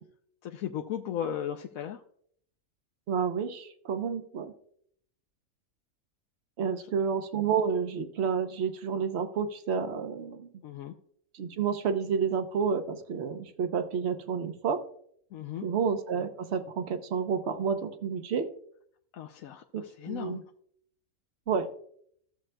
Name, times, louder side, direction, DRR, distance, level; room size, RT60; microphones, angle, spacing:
voice 1, 0.4-2.0 6.7-7.0 10.6-10.9 15.3-15.7 19.1-20.4, left 9 dB, 75° left, 4 dB, 1.0 m, -36 dB
voice 2, 3.1-4.5 6.6-10.5 11.3-14.8 15.6-18.5 19.7-20.4 21.5-21.7, right 6 dB, 55° right, 9 dB, 0.9 m, -30 dB
15.0 x 7.3 x 2.2 m, 0.64 s
omnidirectional pair, 1.5 m